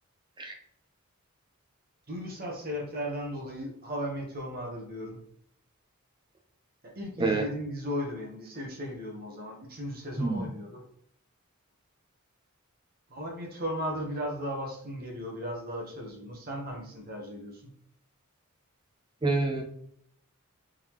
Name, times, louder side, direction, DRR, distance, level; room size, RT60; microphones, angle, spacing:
voice 1, 2.1-5.2 6.8-10.8 13.1-17.7, equal, 45° right, 0 dB, 1.2 m, -36 dB
voice 2, 19.2-19.6, right 3 dB, 20° right, 1 dB, 0.8 m, -27 dB
3.8 x 3.7 x 3.1 m, 0.67 s
head